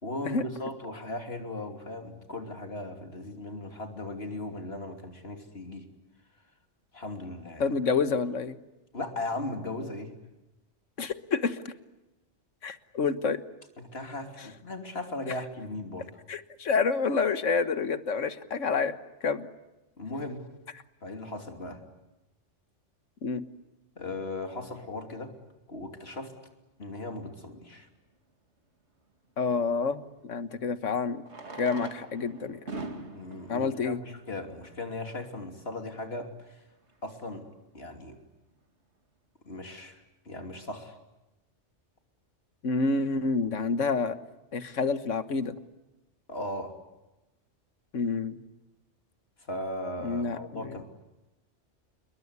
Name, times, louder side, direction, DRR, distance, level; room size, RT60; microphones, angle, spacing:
voice 1, 0.0-5.8 6.9-7.7 8.9-10.1 13.8-16.1 20.0-20.4 21.0-21.8 24.0-25.3 25.7-26.3 26.8-27.9 33.1-36.6 37.0-37.4 37.7-38.2 39.5-41.0 46.3-46.7 49.5-50.8, left 2 dB, 55° left, 5 dB, 3.2 m, -37 dB
voice 2, 7.6-8.6 11.0-11.7 12.6-13.4 16.3-19.0 19.2-19.5 23.2-23.4 29.4-31.2 31.6-32.6 33.5-34.0 42.6-44.2 44.5-45.6 47.9-48.4 50.0-50.8, left 4 dB, 90° left, 11 dB, 1.7 m, -28 dB
Fireworks, 27.7-27.8 30.0-30.1 31.2-34.9 35.7-35.8 36.0-36.1 36.3-36.4 36.9-37.1, right 3 dB, 65° right, 2.5 m, -43 dB
28.0 x 22.0 x 9.6 m, 1.0 s
omnidirectional pair, 1.2 m